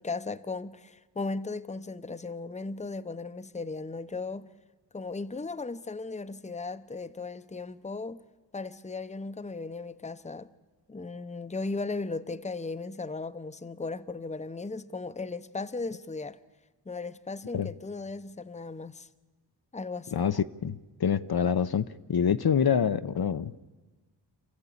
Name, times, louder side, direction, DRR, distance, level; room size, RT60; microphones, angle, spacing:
voice 1, 0.0-4.5 4.9-8.2 8.5-10.5 10.9-16.4 16.9-19.1 19.7-20.1, left 3 dB, 15° left, 0.8 m, -36 dB
voice 2, 20.1-23.6, left 7 dB, 60° left, 0.7 m, -26 dB
28.0 x 14.0 x 8.5 m
wide cardioid pair, 65°, 43 cm